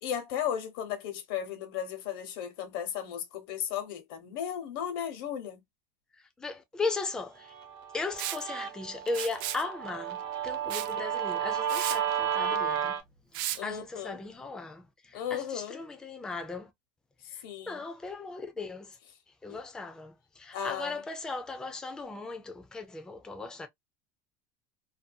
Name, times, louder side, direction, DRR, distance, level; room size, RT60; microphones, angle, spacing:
voice 1, 0.0-5.6 13.5-14.2 15.1-15.8 17.2-17.8 19.5-19.6 20.5-21.0, left 9 dB, 75° left, 0.9 m, -35 dB
voice 2, 6.4-7.5 7.9-12.9 13.6-16.7 17.7-18.9 19.4-23.7, left 3 dB, 5° left, 0.3 m, -37 dB
Guitar, 7.5-13.0, right 8 dB, 85° right, 0.9 m, -32 dB
Liquid, 8.2-8.4 9.1-9.6 10.7-10.9 11.3-11.4 11.7-12.0 13.3-13.6, right 13 dB, 65° right, 0.4 m, -34 dB
2.6 x 2.2 x 2.5 m
cardioid pair, 170°, 12 cm